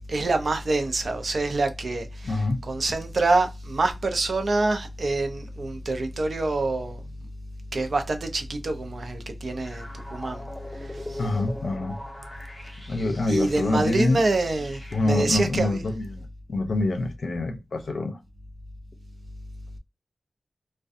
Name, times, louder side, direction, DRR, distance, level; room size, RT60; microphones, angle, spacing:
voice 1, 0.1-2.4 2.7-7.0 7.7-10.4 10.7-11.2 13.3-15.8, right 2 dB, 65° right, 0.5 m, -26 dB
voice 2, 2.2-2.6 11.2-12.0 12.9-14.2 14.9-18.2, left 2 dB, 80° left, 0.5 m, -26 dB
sound 1, 9.6-15.3, left 1 dB, 5° left, 1.1 m, -41 dB
2.5 x 2.2 x 2.4 m
wide cardioid pair, 110°, 0 cm